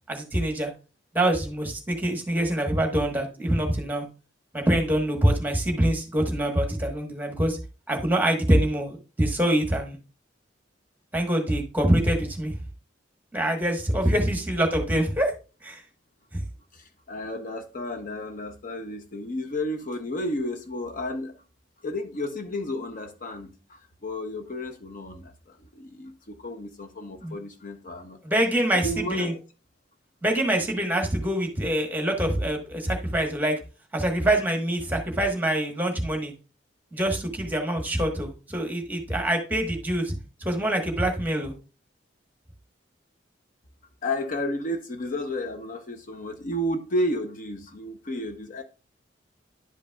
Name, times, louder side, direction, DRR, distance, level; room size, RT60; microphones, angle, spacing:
voice 1, 0.1-0.7 1.1-4.0 4.5-7.6 7.9-10.0 11.1-12.6 13.3-15.3 15.6-15.8 16.3-16.4 27.2-27.3 28.2-29.3 30.2-33.6 33.9-36.3 36.9-40.1 40.4-41.5, right 1 dB, 10° right, 1.2 m, -25 dB
voice 2, 16.7-21.4 21.8-28.2 28.7-29.4 44.0-48.6, left 1 dB, 45° left, 0.7 m, -32 dB
11.0 x 5.2 x 2.3 m
head